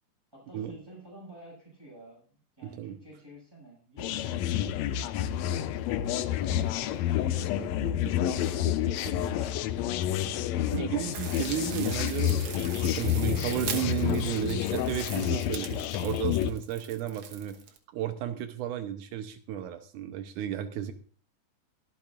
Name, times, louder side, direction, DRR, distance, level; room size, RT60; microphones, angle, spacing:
voice 1, 0.3-7.5 8.0-11.0 13.3-14.1, right 1 dB, 5° right, -3 dB, 6.2 m, -50 dB
voice 2, 2.6-3.0 7.4-8.3 8.7-8.8 10.7-17.6 17.9-20.9, right 11 dB, 80° right, 9 dB, 2.2 m, -34 dB
sound 1, 4.0-16.5, left 12 dB, 75° left, 1.7 m, -29 dB
sound 2, 11.1-17.8, right 8 dB, 60° right, 1.8 m, -41 dB
23.0 x 8.6 x 2.4 m, 0.43 s
omnidirectional pair, 3.6 m